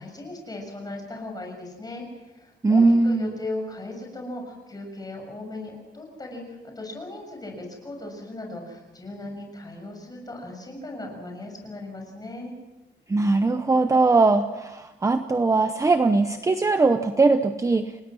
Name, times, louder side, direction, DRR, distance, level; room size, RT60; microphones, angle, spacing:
voice 1, 0.0-12.5, left 2 dB, 20° left, 2 dB, 6.9 m, -37 dB
voice 2, 2.6-3.4 13.1-17.9, right 3 dB, 15° right, 8 dB, 0.8 m, -20 dB
29.5 x 18.5 x 6.2 m, 1.1 s
wide cardioid pair, 170°, 19 cm